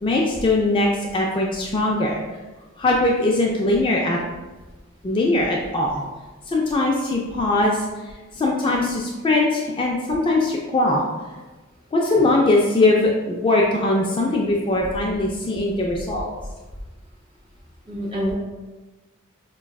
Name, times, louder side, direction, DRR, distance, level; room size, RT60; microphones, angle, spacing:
voice 1, 0.0-2.2 2.8-4.2 5.0-6.0 6.5-7.8 8.3-11.0 11.9-16.3, left 2 dB, 25° left, -2 dB, 0.3 m, -21 dB
voice 2, 17.9-18.3, equal, 25° right, -6 dB, 1.1 m, -27 dB
4.7 x 2.3 x 2.3 m, 1.2 s
head